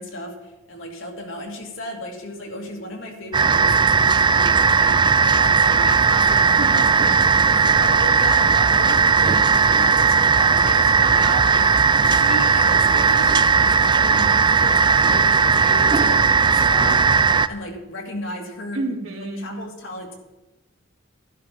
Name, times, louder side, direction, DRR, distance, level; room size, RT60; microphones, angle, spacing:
voice 1, 0.0-17.0 17.5-18.8 19.4-20.2, left 1 dB, 65° left, 1 dB, 2.5 m, -34 dB
sound 1, 3.3-17.5, right 5 dB, 20° right, 0.4 m, -17 dB
voice 2, 6.6-7.1 11.0-11.3 18.7-19.6, right 2 dB, 75° right, -1 dB, 3.1 m, -30 dB
12.0 x 11.5 x 5.2 m, 1.0 s
head